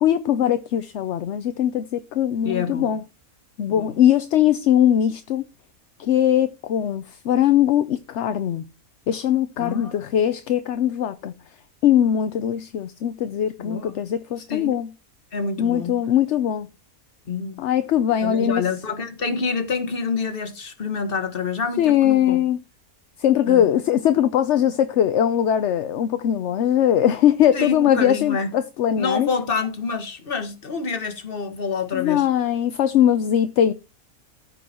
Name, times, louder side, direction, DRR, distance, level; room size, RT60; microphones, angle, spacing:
voice 1, 0.0-3.0 3.6-5.4 6.0-8.6 9.1-11.3 11.8-14.9 15.6-16.7 17.6-18.6 21.8-22.6 23.2-29.3 31.9-33.7, left 10 dB, 60° left, 0.9 m, -20 dB
voice 2, 2.4-2.9 3.7-4.0 9.6-10.0 13.6-14.0 14.5-14.8 15.3-16.0 17.2-17.7 18.2-22.4 23.5-23.7 27.5-28.5 29.0-32.3, left 5 dB, 40° left, 1.6 m, -27 dB
14.0 x 5.4 x 4.4 m
omnidirectional pair, 1.5 m